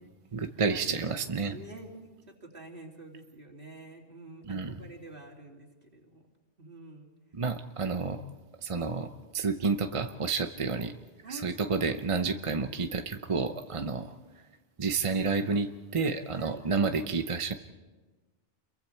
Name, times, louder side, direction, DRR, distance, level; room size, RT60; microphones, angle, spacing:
voice 1, 0.3-1.6 4.4-4.8 7.3-8.2 8.6-10.9 11.3-14.0 14.8-17.5, right 4 dB, 35° right, 7 dB, 0.7 m, -30 dB
voice 2, 1.5-1.9 2.5-6.2 6.6-7.1 11.2-11.6 13.8-13.9 16.3-16.6, right 2 dB, 55° right, 0 dB, 3.2 m, -47 dB
29.0 x 23.0 x 4.6 m, 1.3 s
omnidirectional pair, 1.1 m